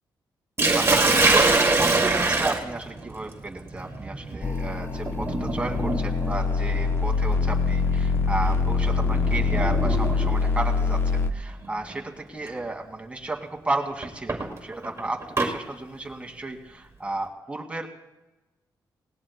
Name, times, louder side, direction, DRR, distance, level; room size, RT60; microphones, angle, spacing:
Sink (filling or washing), 0.6-10.5 11.6-11.9 12.5-12.6 14.0-15.5, right 3 dB, 30° right, 1.9 m, -25 dB
voice 1, 0.7-17.9, right 2 dB, 15° right, 1 dB, 2.1 m, -33 dB
sound 1, 4.4-11.3, left 4 dB, 25° left, 0.7 m, -24 dB
19.0 x 18.0 x 2.2 m, 1.1 s
cardioid pair, 75°, 8 cm